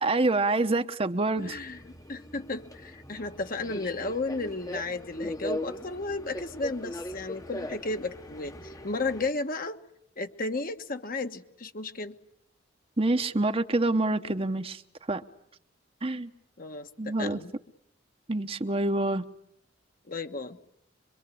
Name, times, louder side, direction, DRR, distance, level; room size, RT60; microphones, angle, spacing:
voice 1, 0.0-1.6 13.0-14.8 15.1-15.2 16.0-16.3 17.0-17.4 18.3-19.3, right 2 dB, 30° right, 8 dB, 1.0 m, -26 dB
voice 2, 1.4-9.8 10.2-12.2 16.6-17.5 20.1-20.6, left 3 dB, 50° left, 7 dB, 1.4 m, -34 dB
Subway metro underground, 1.4-9.3, left 1 dB, 20° left, 1.0 m, -40 dB
25.0 x 23.5 x 8.5 m, 0.76 s
head